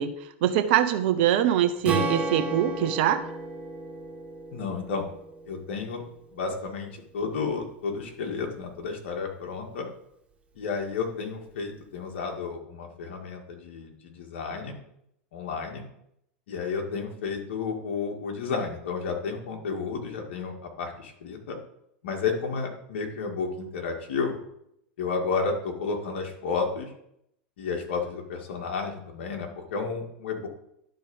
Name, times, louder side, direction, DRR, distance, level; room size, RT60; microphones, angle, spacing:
voice 1, 0.0-3.2, right 10 dB, 65° right, 7 dB, 1.1 m, -23 dB
Strum, 1.8-6.1, right 2 dB, 20° right, 2.1 m, -33 dB
voice 2, 4.5-5.1 5.5-6.0 6.3-9.9 10.5-14.8 15.3-15.8 16.5-21.6 22.0-24.4 25.0-26.9 27.6-30.5, left 5 dB, 75° left, 1 dB, 2.2 m, -32 dB
11.5 x 4.2 x 5.6 m, 0.75 s
hypercardioid pair, 100°, 6 cm